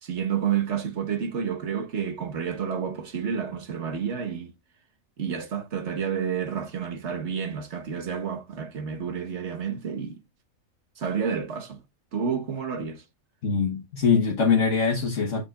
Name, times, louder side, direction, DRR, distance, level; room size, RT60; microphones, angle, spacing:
voice 1, 0.0-4.5 5.2-10.2 11.0-11.8 12.1-13.0, right 7 dB, 60° right, 1.4 m, -30 dB
voice 2, 13.4-15.5, left 5 dB, 65° left, 1.5 m, -23 dB
6.9 x 6.7 x 2.3 m
omnidirectional pair, 1.4 m